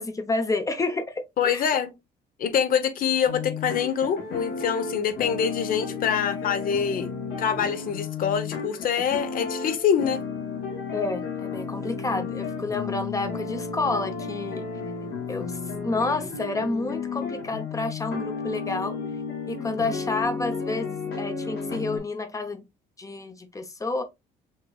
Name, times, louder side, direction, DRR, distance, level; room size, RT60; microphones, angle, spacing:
voice 1, 0.0-1.6 10.9-14.7 15.3-19.0 19.5-22.6 23.0-24.0, left 3 dB, 20° left, 0.8 m, -29 dB
voice 2, 1.4-1.9 2.4-7.1 7.4-10.2, left 8 dB, 55° left, 0.9 m, -25 dB
sound 1, 3.3-22.0, left 5 dB, 80° left, 2.1 m, -33 dB
5.7 x 3.0 x 2.3 m
cardioid pair, 110°, 17 cm